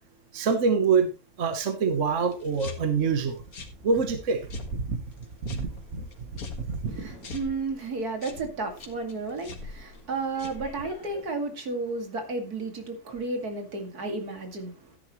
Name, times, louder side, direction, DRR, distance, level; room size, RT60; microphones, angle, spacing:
voice 1, 0.3-1.1 1.4-3.4 3.8-4.4 4.7-5.0 5.4-6.0 6.3-6.8, right 5 dB, 55° right, 1.4 m, -25 dB
sound 1, 2.3-11.2, left 3 dB, 65° left, 2.2 m, -43 dB
voice 2, 6.9-15.0, right 3 dB, 75° right, 2.8 m, -33 dB
13.5 x 10.0 x 3.1 m
omnidirectional pair, 1.6 m